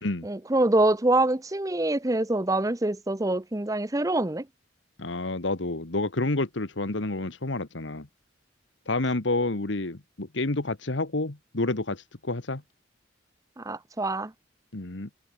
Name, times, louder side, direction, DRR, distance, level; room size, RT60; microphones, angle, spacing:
voice 1, 0.2-4.5 13.6-14.3, right 2 dB, 15° right, 0.8 m, -25 dB
voice 2, 5.0-8.1 8.9-12.6 14.7-15.1, left 2 dB, 70° left, 1.6 m, -29 dB
head